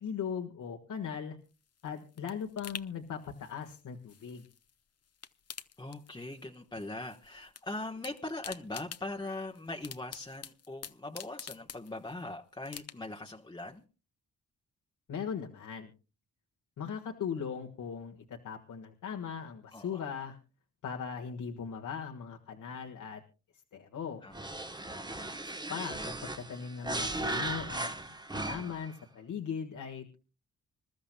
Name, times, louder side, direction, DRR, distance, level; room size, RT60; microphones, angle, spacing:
voice 1, 0.0-1.4 1.8-4.4 15.1-15.9 16.8-20.4 20.8-23.2 23.7-24.2 25.4-27.9 28.3-30.2, left 7 dB, 80° left, 2 dB, 1.7 m, -39 dB
sound 1, 1.5-4.7 5.0-6.5 6.8-7.6 7.9-12.2 12.6-13.3 13.7-13.8, left 8 dB, 55° left, 1.0 m, -47 dB
voice 2, 5.8-13.8 19.7-20.0 24.2-24.3, left 2 dB, 15° left, 2 dB, 1.1 m, -41 dB
sound 2, 24.3-28.9, right 2 dB, 15° right, 1.2 m, -37 dB
26.0 x 13.0 x 2.3 m, 0.34 s
cardioid pair, 80°, 31 cm